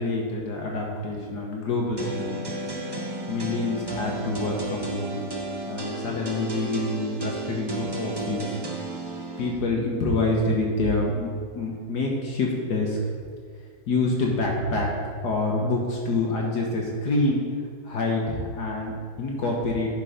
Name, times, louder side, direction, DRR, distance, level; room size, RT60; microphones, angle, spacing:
voice 1, 0.0-2.4 3.3-5.2 5.7-8.6 9.4-13.1 13.9-14.9 15.2-17.4 17.8-19.9, left 2 dB, 70° left, -1 dB, 1.6 m, -26 dB
sound 1, 2.0-9.6, right 2 dB, 30° right, 0.4 m, -33 dB
11.0 x 4.5 x 5.0 m, 2.2 s
omnidirectional pair, 1.9 m